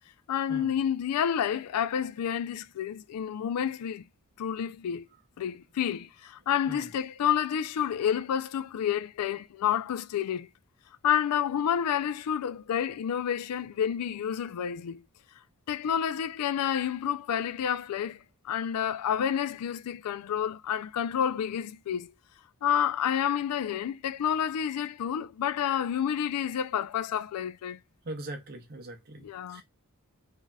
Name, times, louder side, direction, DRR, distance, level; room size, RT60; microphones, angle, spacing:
voice 1, 0.3-4.0 4.4-5.0 5.4-10.5 11.0-15.0 15.7-22.1 22.6-27.8 29.2-29.6, left 9 dB, 85° left, 0.3 m, -29 dB
voice 2, 28.0-29.6, right 1 dB, 45° right, 0.7 m, -41 dB
3.3 x 2.5 x 2.2 m
head